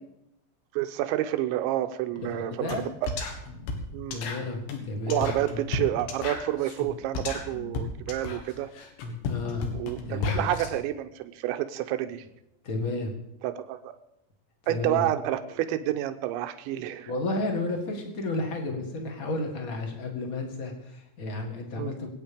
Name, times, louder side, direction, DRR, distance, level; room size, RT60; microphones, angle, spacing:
voice 1, 0.7-2.8 3.0-3.1 3.9-4.2 5.1-8.7 9.7-12.2 13.4-14.0 14.7-17.1 21.8-21.9, right 13 dB, 90° right, 8 dB, 3.1 m, -29 dB
voice 2, 2.2-2.9 4.1-5.5 9.3-9.7 10.1-10.5 12.6-13.1 14.7-15.0 17.0-22.1, left 2 dB, 55° left, 2 dB, 0.9 m, -32 dB
sound 1, 2.7-2.8 3.1-10.7, left 4 dB, 75° left, 4.0 m, -34 dB
23.0 x 9.1 x 5.2 m, 0.84 s
omnidirectional pair, 5.2 m